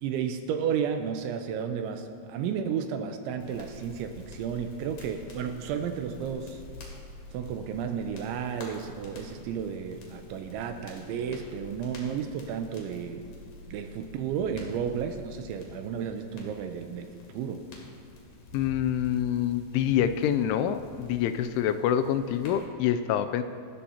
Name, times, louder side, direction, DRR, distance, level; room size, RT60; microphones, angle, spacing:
voice 1, 0.0-6.6 7.3-13.2 13.7-17.7, right 7 dB, 80° right, 6 dB, 2.9 m, -32 dB
sound 1, 3.3-15.3, right 1 dB, 40° right, 5.0 m, -51 dB
sound 2, 3.4-22.7, left 2 dB, 55° left, 3.9 m, -49 dB
voice 2, 18.5-23.4, left 10 dB, 85° left, 10 dB, 2.9 m, -26 dB
25.5 x 13.0 x 2.9 m, 2.4 s
omnidirectional pair, 5.7 m